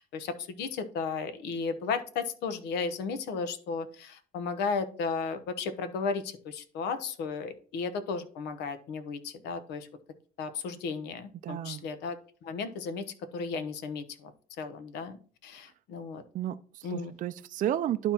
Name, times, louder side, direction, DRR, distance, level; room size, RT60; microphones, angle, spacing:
voice 1, 0.0-9.9 10.4-14.3 14.6-16.2 16.8-17.1, left 5 dB, 80° left, 10 dB, 1.0 m, -34 dB
voice 2, 11.4-11.9 16.3-18.1, right 11 dB, 50° right, 10 dB, 0.4 m, -32 dB
11.5 x 4.3 x 2.9 m, 0.42 s
cardioid pair, 110°, 17 cm